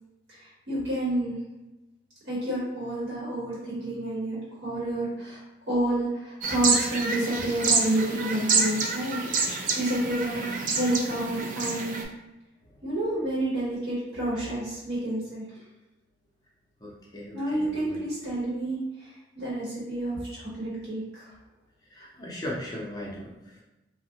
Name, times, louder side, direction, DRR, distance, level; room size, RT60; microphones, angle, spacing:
voice 1, 0.3-1.4 2.2-9.2 9.8-10.4 10.7-12.0 12.8-15.5 17.3-21.3, right 1 dB, 75° right, -7 dB, 1.1 m, -29 dB
sound 1, 6.4-12.0, right 4 dB, 45° right, 0.4 m, -28 dB
voice 2, 16.8-18.0 21.9-23.6, left 1 dB, 20° left, -3 dB, 0.5 m, -38 dB
3.6 x 2.1 x 2.7 m, 1.0 s
head